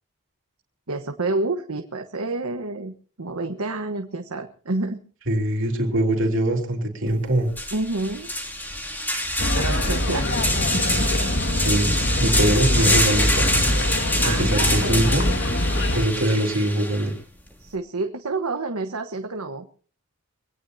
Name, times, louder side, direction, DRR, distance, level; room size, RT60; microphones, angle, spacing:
voice 1, 0.9-5.0 7.7-8.3 9.5-10.3 10.7-11.0 14.2-15.0 17.6-19.6, right 3 dB, 90° right, 5 dB, 1.3 m, -29 dB
voice 2, 5.3-7.5 11.6-11.9 12.2-13.6 14.4-15.2 15.9-17.1, right 1 dB, 60° right, 1 dB, 3.4 m, -22 dB
sound 1, 7.1-7.2 7.5-17.1, left 1 dB, 10° left, 2.9 m, -26 dB
sound 2, 9.4-16.1, left 1 dB, 55° left, 1.8 m, -23 dB
23.5 x 18.0 x 2.8 m, 0.41 s
head